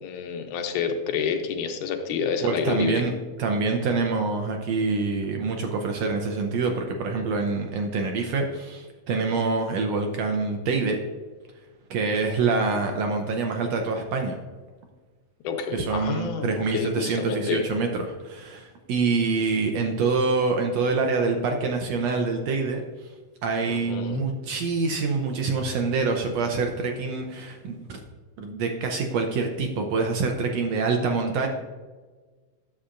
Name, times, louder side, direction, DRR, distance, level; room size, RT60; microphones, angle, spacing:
voice 1, 0.0-3.0 15.4-17.6 23.7-24.2, left 6 dB, 80° left, 5 dB, 2.2 m, -28 dB
voice 2, 2.4-3.1 3.4-11.0 11.9-14.4 15.7-22.8 23.4-28.0 28.4-31.5, right 4 dB, 75° right, 3 dB, 1.6 m, -26 dB
9.7 x 7.2 x 2.5 m, 1.4 s
omnidirectional pair, 3.5 m